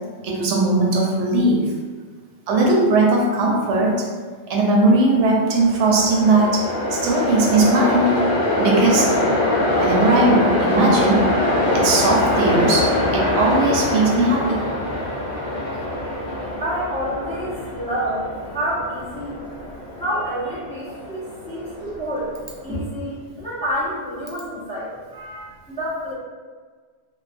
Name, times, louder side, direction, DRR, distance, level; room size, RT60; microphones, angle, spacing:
voice 1, 0.2-1.7 2.5-4.0 4.5-8.1 8.6-9.1 9.7-11.2 11.7-14.7, right 2 dB, 90° right, -1 dB, 0.9 m, -18 dB
Train, 5.3-22.5, left 1 dB, 80° left, 1.0 m, -23 dB
voice 2, 16.6-19.4 20.0-22.3 22.6-26.1, equal, 10° left, -10 dB, 0.5 m, -28 dB
2.5 x 2.3 x 2.4 m, 1.5 s
omnidirectional pair, 1.2 m